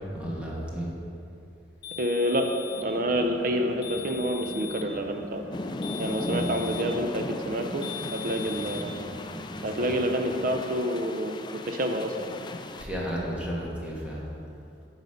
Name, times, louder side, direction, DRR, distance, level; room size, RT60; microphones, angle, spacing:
voice 1, 0.1-0.9 6.2-6.5 8.6-8.7 9.0-9.3 9.5-9.9 12.7-14.2, equal, 5° right, -5 dB, 1.4 m, -33 dB
sound 1, 1.8-2.9 3.8-4.9 5.8-7.0 7.8-8.9, left 9 dB, 65° left, 0.9 m, -40 dB
voice 2, 2.0-2.5 2.8-5.4 6.0-9.0 9.6-11.4 11.7-12.1, equal, 50° right, 5 dB, 0.5 m, -28 dB
sound 2, 2.7-10.6, equal, 10° left, 1.4 m, -43 dB
sound 3, 5.5-12.8, left 2 dB, 25° left, 0.3 m, -37 dB
9.2 x 4.0 x 6.5 m, 2.6 s
head